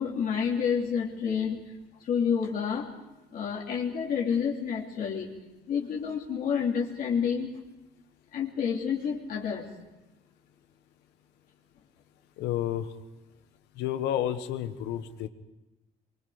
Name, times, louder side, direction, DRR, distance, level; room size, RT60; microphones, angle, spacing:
voice 1, 0.0-1.6 2.0-2.9 3.3-5.3 5.7-7.5 8.3-9.7, left 7 dB, 55° left, -2 dB, 3.1 m, -29 dB
voice 2, 12.4-12.9 13.7-15.3, left 11 dB, 85° left, 9 dB, 1.4 m, -30 dB
25.0 x 23.5 x 5.1 m, 1.0 s
cardioid pair, 110°, 17 cm